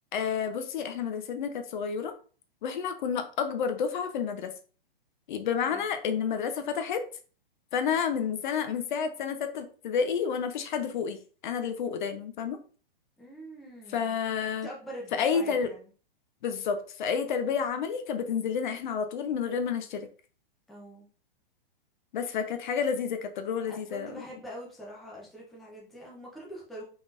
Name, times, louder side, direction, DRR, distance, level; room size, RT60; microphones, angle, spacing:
voice 1, 0.1-2.1 2.6-4.5 5.3-7.0 7.7-11.2 11.4-12.6 13.9-14.7 15.1-15.7 16.4-20.0 22.1-24.1, left 6 dB, 55° left, 8 dB, 0.6 m, -30 dB
voice 2, 13.2-14.2 14.6-15.9 20.7-21.1 23.7-26.8, equal, ahead, -4 dB, 0.5 m, -44 dB
3.6 x 3.6 x 2.4 m, 0.39 s
hypercardioid pair, 155°, 30 cm